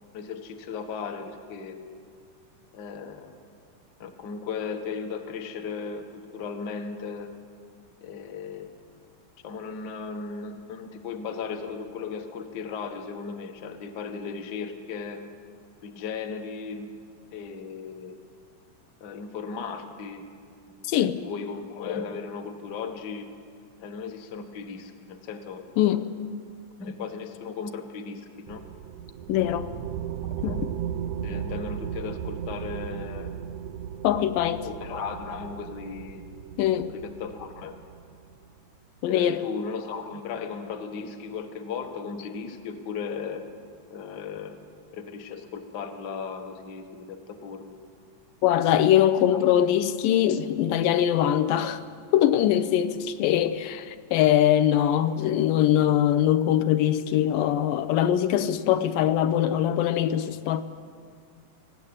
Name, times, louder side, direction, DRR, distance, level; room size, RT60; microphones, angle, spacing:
voice 1, 0.1-1.8 2.7-3.4 4.0-7.3 8.0-8.8 9.4-15.2 15.8-16.9 17.3-18.2 19.0-20.2 20.7-23.3 23.8-26.0 26.8-28.6 30.2-30.6 31.2-33.4 34.6-36.2 36.9-37.7 39.0-43.4 43.9-44.6 44.9-47.8 49.3-49.4, left 5 dB, 65° left, 5 dB, 1.0 m, -36 dB
sound 1, 28.5-38.5, right 9 dB, 85° right, 1.6 m, -36 dB
voice 2, 29.3-29.7 30.4-30.5 34.0-34.6 36.6-36.9 39.0-39.4 48.4-51.8 52.1-60.6, left 11 dB, 80° left, 11 dB, 2.2 m, -22 dB
19.5 x 15.5 x 8.7 m, 2.1 s
omnidirectional pair, 4.0 m